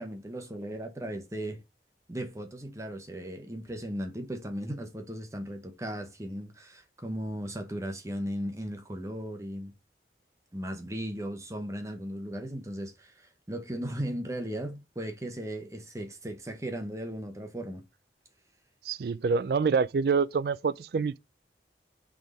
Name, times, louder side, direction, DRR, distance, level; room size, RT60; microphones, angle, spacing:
voice 1, 0.0-1.6 2.1-9.7 10.5-17.8, equal, 20° right, 1.0 m, -37 dB
voice 2, 18.8-21.2, right 5 dB, 60° right, 0.4 m, -26 dB
6.0 x 3.6 x 4.9 m
head